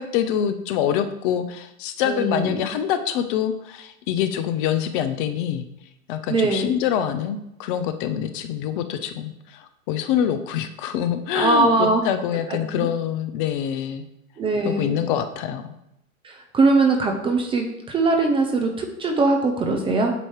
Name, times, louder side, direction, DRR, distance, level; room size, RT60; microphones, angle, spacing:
voice 1, 0.0-5.7 6.1-14.0 14.6-15.7, left 9 dB, 35° left, 9 dB, 0.5 m, -25 dB
voice 2, 2.0-2.7 6.3-6.7 11.3-12.1 12.5-12.9 14.4-15.0 16.2-20.1, right 3 dB, 15° right, 3 dB, 0.5 m, -21 dB
8.0 x 2.8 x 4.6 m, 0.82 s
hypercardioid pair, 105°, 43 cm